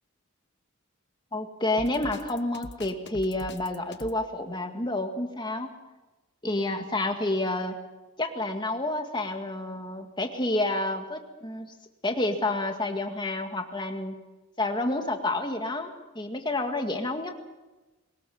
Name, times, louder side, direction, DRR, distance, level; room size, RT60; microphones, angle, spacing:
voice 1, 1.3-5.7 6.4-7.8 8.2-11.7 12.0-14.2 14.6-15.9 16.2-17.3, left 2 dB, 20° left, 4 dB, 2.0 m, -29 dB
Drum kit, 1.8-4.2, left 2 dB, 50° left, 1.2 m, -42 dB
22.5 x 20.5 x 7.1 m, 1.1 s
head